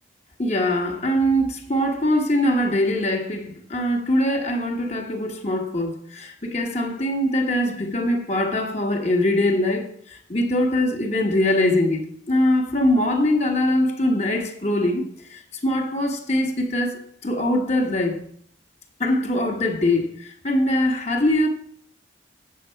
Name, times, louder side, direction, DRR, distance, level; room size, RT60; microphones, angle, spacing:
voice 1, 0.4-9.9 10.3-12.0 12.3-15.0 15.3-18.2 19.0-20.1 20.4-21.5, left 1 dB, 40° left, 1.3 m, -22 dB
8.1 x 7.6 x 5.6 m
head